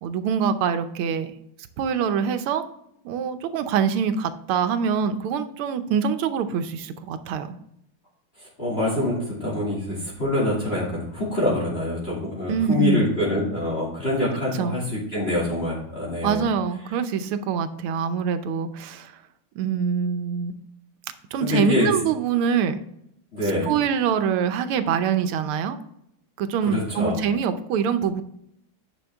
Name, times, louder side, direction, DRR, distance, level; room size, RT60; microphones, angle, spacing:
voice 1, 0.0-1.3 1.8-2.6 3.0-7.6 12.5-13.1 14.5-14.8 16.2-19.1 19.6-20.5 21.3-22.8 23.6-25.8 26.4-28.2, right 7 dB, 90° right, 10 dB, 1.6 m, -24 dB
voice 2, 8.6-16.5 21.4-21.9 23.3-23.7 26.7-27.3, left 1 dB, 30° left, -6 dB, 2.5 m, -25 dB
10.0 x 5.7 x 3.5 m, 0.75 s
omnidirectional pair, 2.3 m